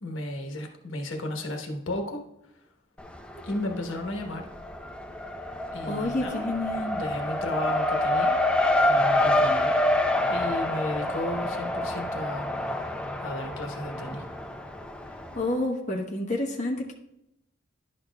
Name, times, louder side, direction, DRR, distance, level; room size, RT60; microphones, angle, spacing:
voice 1, 0.0-2.2 3.4-4.5 5.7-6.5 6.9-8.3 8.8-9.7 10.3-12.7 13.2-14.2, left 1 dB, 80° left, 3 dB, 1.1 m, -34 dB
Race car auto racing, 3.0-3.7 4.0-15.4, left 1 dB, 5° left, 0.5 m, -27 dB
voice 2, 5.9-7.0 15.3-16.9, left 1 dB, 40° left, -1 dB, 1.1 m, -29 dB
11.0 x 6.4 x 2.3 m, 0.82 s
head